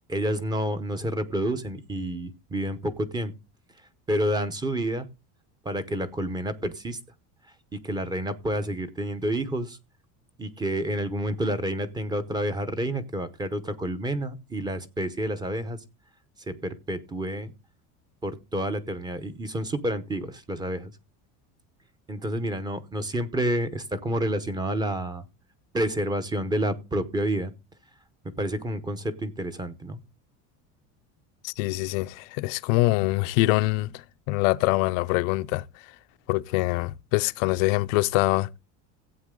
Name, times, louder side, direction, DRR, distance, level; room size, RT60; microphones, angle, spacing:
voice 1, 0.1-3.3 4.1-5.1 5.6-7.0 7.8-9.8 10.4-15.8 16.5-17.5 18.2-20.9 22.1-25.2 25.7-27.5 28.4-30.0, right 1 dB, 10° right, 0.8 m, -29 dB
voice 2, 31.4-35.6 36.3-38.6, left 20 dB, 85° left, 0.7 m, -24 dB
15.0 x 8.4 x 3.7 m
cardioid pair, 170°, 38 cm